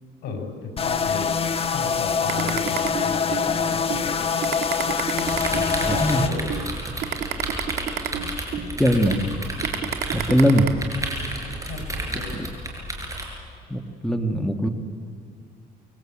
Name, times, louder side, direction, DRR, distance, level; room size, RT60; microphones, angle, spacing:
voice 1, 0.2-1.3 1.7-4.3 5.7-6.6 11.4-12.4, left 5 dB, 75° left, 5 dB, 5.4 m, -34 dB
sound 1, 0.8-6.3, left 6 dB, 35° left, 1.4 m, -24 dB
sound 2, 2.3-3.5 3.9-4.0 4.4-6.1 6.5-6.6 7.0-8.7 9.1-9.3 9.6-10.7, right 10 dB, 75° right, 2.2 m, -28 dB
sound 3, 5.2-13.3, right 1 dB, 20° right, 6.4 m, -32 dB
voice 2, 5.5-6.2 8.8-9.2 10.1-10.7 12.4-12.5 13.7-14.7, equal, 5° left, 5 dB, 1.6 m, -21 dB
26.5 x 21.0 x 8.8 m, 2.1 s
cardioid pair, 110°, 17 cm